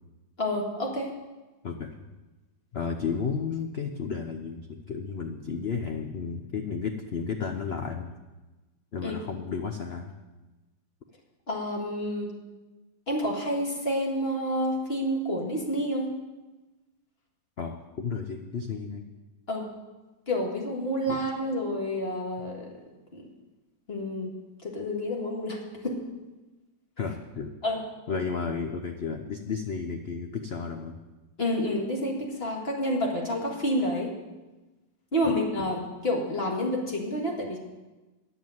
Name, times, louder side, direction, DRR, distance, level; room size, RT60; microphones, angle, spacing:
voice 1, 0.4-1.1 9.0-9.1 11.5-12.3 13.1-16.1 19.5-19.7 20.3-22.7 23.1-23.2 23.9-24.3 24.6-26.0 27.6-27.8 31.4-34.1 35.1-37.6, equal, 35° left, -1 dB, 2.0 m, -29 dB
voice 2, 1.6-1.9 2.7-8.1 8.9-10.1 17.6-19.1 21.1-21.2 27.0-27.5 28.1-31.0 35.2-35.7, left 5 dB, 75° left, 4 dB, 0.5 m, -33 dB
9.9 x 7.2 x 7.8 m, 1.1 s
omnidirectional pair, 2.0 m